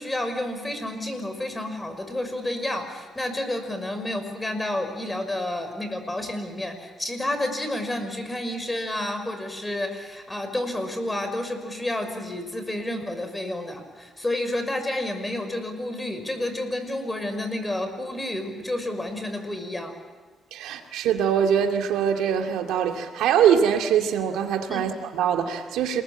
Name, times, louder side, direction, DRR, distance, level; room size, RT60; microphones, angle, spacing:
voice 1, 0.0-19.9 24.7-24.9, left 1 dB, 15° left, 7 dB, 5.8 m, -30 dB
voice 2, 20.5-26.0, right 8 dB, 90° right, 4 dB, 2.3 m, -23 dB
28.5 x 21.0 x 8.7 m, 1.3 s
cardioid pair, 90°, 0 cm